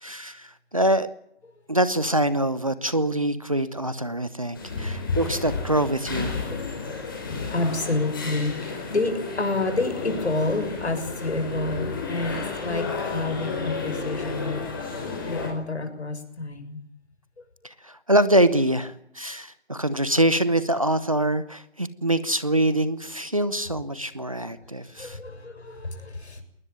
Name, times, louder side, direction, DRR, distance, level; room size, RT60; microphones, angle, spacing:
voice 1, 0.0-1.1 1.7-6.3 17.8-25.2, right 1 dB, 30° right, 15 dB, 0.9 m, -24 dB
sound 1, 4.5-15.5, left 4 dB, 20° left, 4.8 m, -32 dB
voice 2, 6.5-7.0 7.5-16.8 25.0-26.4, left 2 dB, 70° left, 7 dB, 6.8 m, -29 dB
21.0 x 20.5 x 9.2 m, 0.71 s
figure-of-eight pair, 180°, 35 cm